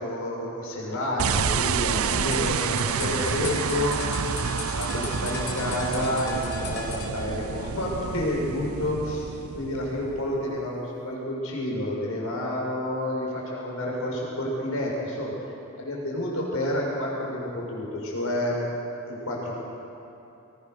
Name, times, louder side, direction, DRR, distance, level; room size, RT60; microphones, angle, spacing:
voice 1, 0.0-4.0 4.6-15.3 15.8-18.6 19.1-19.5, left 1 dB, 90° left, -3 dB, 6.6 m, -29 dB
sound 1, 1.2-10.6, right 6 dB, 85° right, 0.6 m, -29 dB
sound 2, 2.0-7.1, left 4 dB, 50° left, 6.6 m, -37 dB
25.5 x 22.0 x 6.9 m, 2.8 s
head